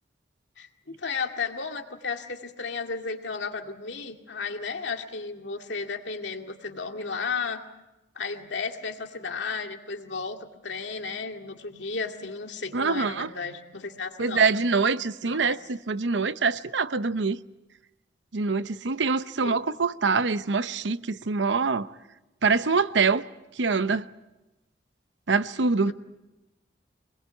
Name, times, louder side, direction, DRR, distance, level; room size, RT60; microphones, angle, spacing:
voice 1, 0.6-7.6 8.2-14.5 15.2-15.6 19.4-19.6 25.8-25.9, left 4 dB, 85° left, 2.2 m, -34 dB
voice 2, 12.7-13.3 14.2-17.4 18.3-21.9 22.4-23.2 23.6-24.1 25.3-25.9, right 4 dB, 85° right, 0.8 m, -24 dB
25.5 x 20.5 x 8.3 m
head